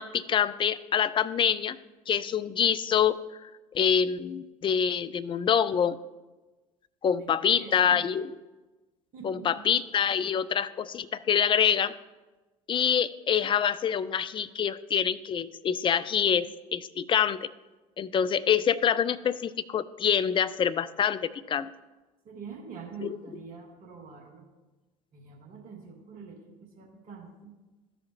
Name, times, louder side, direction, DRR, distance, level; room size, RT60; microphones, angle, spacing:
voice 1, 0.0-1.8 2.1-3.2 3.4-3.5 3.7-6.0 7.0-8.3 9.2-11.9 12.7-16.5 16.7-17.5 18.0-21.7 23.0-23.1, left 8 dB, 25° left, 14 dB, 0.4 m, -26 dB
voice 2, 7.2-8.0 9.1-9.7 22.2-24.5 25.1-27.5, right 5 dB, 50° right, 0 dB, 1.5 m, -45 dB
13.0 x 4.9 x 2.9 m, 1.1 s
figure-of-eight pair, 60°, 19 cm